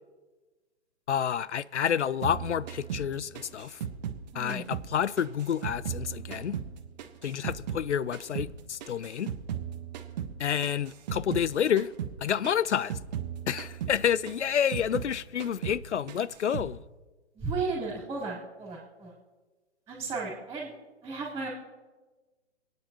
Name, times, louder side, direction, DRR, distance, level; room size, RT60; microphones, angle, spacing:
voice 1, 1.1-3.8 4.3-6.6 7.2-9.3 10.4-11.9 12.2-13.0 13.5-16.8, left 8 dB, 75° left, 0.6 m, -29 dB
sound 1, 2.2-4.9 5.2-7.9 8.1-11.5 11.8-12.2 12.4-15.1 15.4-15.8 16.1-16.7, right 9 dB, 40° right, 1.1 m, -37 dB
voice 2, 17.4-19.1 19.9-20.7 21.0-21.5, right 4 dB, 10° right, 3.5 m, -34 dB
27.5 x 9.5 x 2.9 m
figure-of-eight pair, 130°, 35 cm